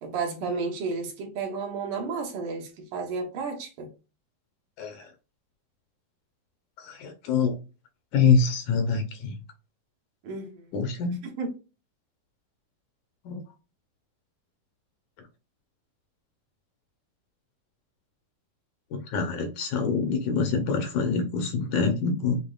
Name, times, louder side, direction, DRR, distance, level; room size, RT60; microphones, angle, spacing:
voice 1, 0.0-3.9 10.2-10.7 11.2-11.5, right 4 dB, 70° right, 2.7 m, -32 dB
voice 2, 4.8-5.1 6.8-7.6 8.1-9.4 10.7-11.2 13.3-13.4 18.9-22.4, left 5 dB, 70° left, 2.1 m, -25 dB
7.0 x 3.0 x 2.4 m
omnidirectional pair, 3.9 m